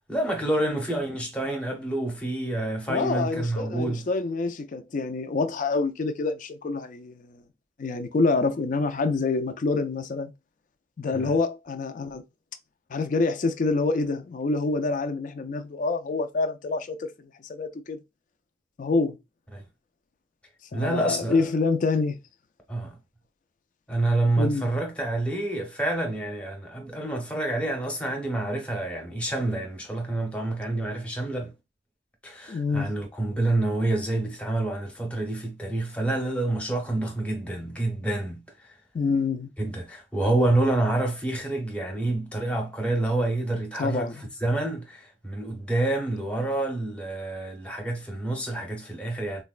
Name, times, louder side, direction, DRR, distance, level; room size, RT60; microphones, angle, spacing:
voice 1, 0.1-4.1 11.1-11.3 19.5-19.6 20.7-21.4 22.7-22.9 23.9-31.5 32.2-38.7 39.6-49.4, right 2 dB, 5° left, 0.7 m, -28 dB
voice 2, 2.9-7.4 7.8-10.3 11.0-12.2 12.9-17.1 17.4-18.0 18.8-19.2 20.7-22.2 24.4-24.7 32.5-32.9 38.9-39.5 43.8-44.2, left 3 dB, 45° left, 0.4 m, -26 dB
3.9 x 2.1 x 2.4 m
head